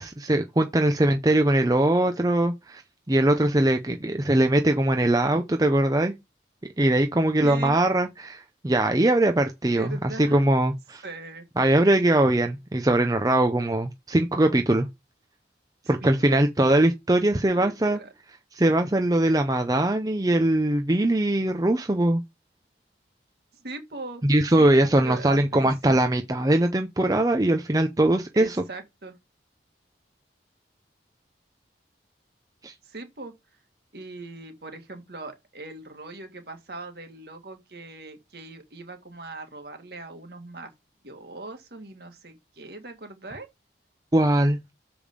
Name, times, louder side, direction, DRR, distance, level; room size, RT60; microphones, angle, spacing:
voice 1, 0.0-2.8 3.1-6.1 6.8-9.9 10.2-11.0 11.6-14.9 15.9-18.0 18.6-22.2 24.2-28.6 32.6-32.7 44.1-44.6, right 1 dB, 20° right, 0.6 m, -21 dB
voice 2, 7.4-7.8 9.8-10.5 11.0-11.5 15.8-16.1 17.5-18.1 23.5-24.2 24.6-26.0 28.3-29.2 32.8-33.3 33.9-40.7 41.0-43.5, right 2 dB, 60° right, 1.8 m, -40 dB
7.0 x 5.0 x 5.1 m
head